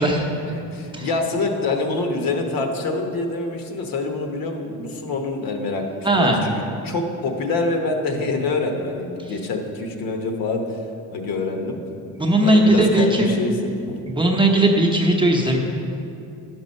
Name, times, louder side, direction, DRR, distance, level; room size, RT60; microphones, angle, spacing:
voice 1, 0.4-5.8 6.1-10.8 11.1-11.8 12.4-13.5 13.9-14.0, left 3 dB, 65° left, 4 dB, 1.2 m, -25 dB
voice 2, 6.0-6.4 12.2-13.4 14.1-15.6, right 1 dB, 10° right, -1 dB, 0.8 m, -18 dB
10.5 x 6.1 x 5.4 m, 2.7 s
cardioid pair, 135°, 38 cm